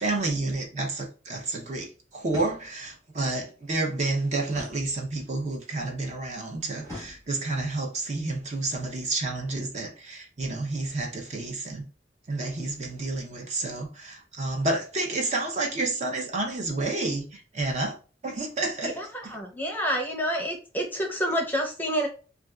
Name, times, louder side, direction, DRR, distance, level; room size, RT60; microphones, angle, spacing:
voice 1, 0.0-11.8 12.3-18.0 18.2-19.4, right 2 dB, 40° right, 0.6 m, -30 dB
sound 1, 2.3-3.0 4.5-5.5 6.8-7.7, left 1 dB, 20° right, 1.3 m, -44 dB
voice 2, 18.8-22.1, equal, 10° left, 0.6 m, -28 dB
3.9 x 2.3 x 2.3 m
head